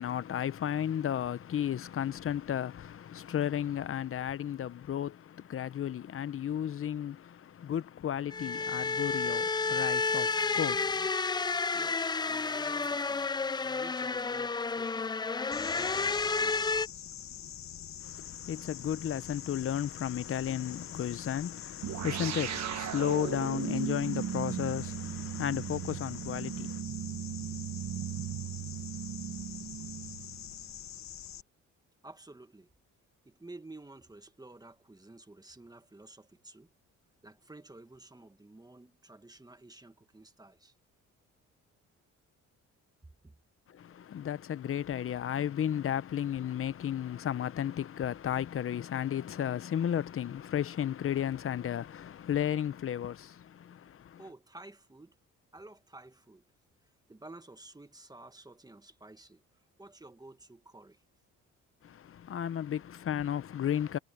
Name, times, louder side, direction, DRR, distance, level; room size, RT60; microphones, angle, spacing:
voice 1, 0.0-11.1 18.0-26.8 43.7-54.2 61.8-64.0, left 10 dB, 45° left, 0.8 m, -34 dB
sound 1, 8.3-16.9, left 4 dB, 15° left, 0.4 m, -31 dB
voice 2, 11.7-15.1 15.4-17.0 32.0-32.7 33.3-36.7 37.2-40.7 43.2-43.3 54.2-55.2 55.5-56.4 57.1-59.4 59.8-61.0, right 2 dB, 15° right, 1.8 m, -52 dB
sound 2, 15.5-31.4, left 11 dB, 65° left, 1.4 m, -45 dB
sound 3, 21.8-30.6, right 10 dB, 60° right, 1.3 m, -37 dB
cardioid pair, 90°, 30 cm